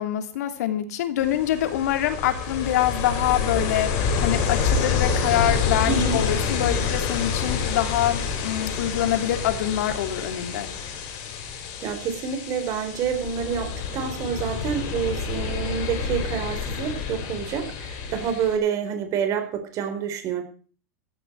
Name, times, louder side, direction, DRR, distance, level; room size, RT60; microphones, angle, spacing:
voice 1, 0.0-10.7, left 11 dB, 75° left, 7 dB, 2.8 m, -25 dB
Ocean, 1.2-18.6, left 6 dB, 50° left, 5.5 m, -28 dB
voice 2, 5.9-6.2 11.8-20.4, right 7 dB, 40° right, 7 dB, 4.5 m, -28 dB
16.0 x 14.5 x 4.7 m, 0.42 s
supercardioid pair, 135°, 9 cm